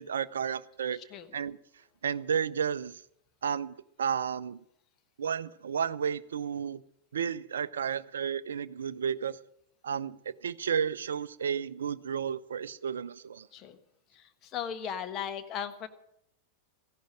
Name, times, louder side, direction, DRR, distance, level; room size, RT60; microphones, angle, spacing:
voice 1, 0.0-1.0 1.3-1.6 2.0-3.0 3.4-4.6 5.2-6.8 7.1-9.4 9.8-13.5, right 7 dB, 65° right, 17 dB, 0.5 m, -32 dB
voice 2, 0.9-1.3 13.5-13.8 14.1-15.9, left 8 dB, 35° left, 8 dB, 1.3 m, -37 dB
15.0 x 11.5 x 6.3 m, 0.75 s
figure-of-eight pair, 90°, 0 cm